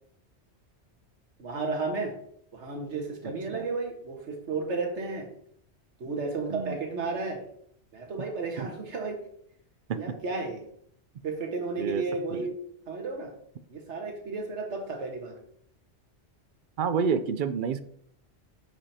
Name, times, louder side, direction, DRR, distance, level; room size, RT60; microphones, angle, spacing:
voice 1, 1.4-2.1 2.5-5.3 6.0-7.4 7.9-9.2 10.0-10.6 11.2-12.6 12.9-13.3 13.7-15.4, right 3 dB, 85° right, 2 dB, 1.7 m, -33 dB
voice 2, 6.5-6.8 9.9-10.0 11.8-12.0 12.3-12.4 16.8-17.8, right 6 dB, 60° right, 11 dB, 0.6 m, -28 dB
11.0 x 5.2 x 2.8 m, 0.67 s
omnidirectional pair, 1.2 m